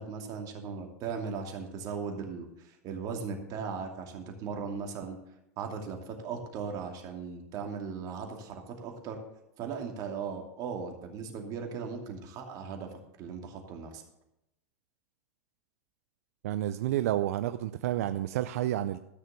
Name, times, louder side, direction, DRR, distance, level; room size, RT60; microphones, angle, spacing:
voice 1, 0.0-5.2 5.6-9.2 9.6-14.0, right 5 dB, 50° right, 4 dB, 2.6 m, -38 dB
voice 2, 16.4-19.0, right 13 dB, 75° right, 12 dB, 0.5 m, -30 dB
13.0 x 6.6 x 6.9 m, 0.84 s
hypercardioid pair, 105°, 8 cm